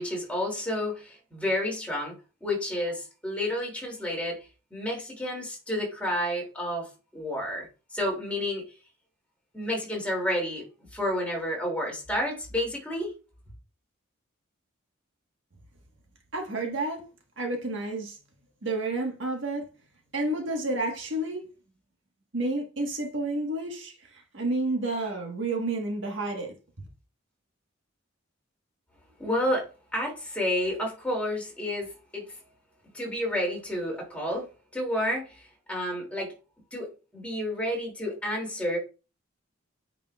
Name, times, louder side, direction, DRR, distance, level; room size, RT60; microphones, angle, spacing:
voice 1, 0.0-2.1 2.4-8.6 9.5-10.7 10.9-13.1 29.2-32.4 32.9-36.3 36.7-38.8, left 1 dB, 5° left, 2.7 m, -30 dB
voice 2, 16.3-17.0 17.4-18.2 18.6-19.7 20.1-21.5 22.3-26.5, right 2 dB, 65° right, 1.5 m, -30 dB
8.9 x 4.9 x 2.4 m
head